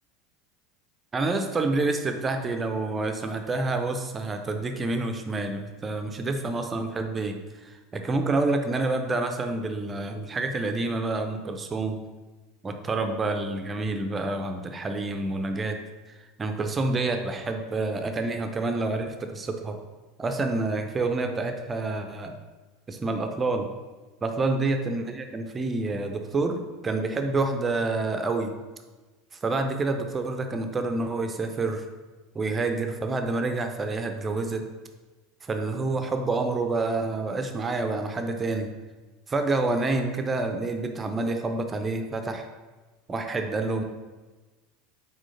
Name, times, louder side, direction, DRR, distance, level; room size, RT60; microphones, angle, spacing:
voice 1, 1.1-12.0 12.6-15.8 16.4-19.8 20.2-22.3 22.9-23.7 24.2-28.5 29.4-31.9 32.3-34.6 35.4-38.7 39.3-42.5 43.1-43.8, right 3 dB, 20° right, 6 dB, 0.6 m, -28 dB
6.2 x 4.3 x 4.1 m, 1.3 s
figure-of-eight pair, 75°, 0 cm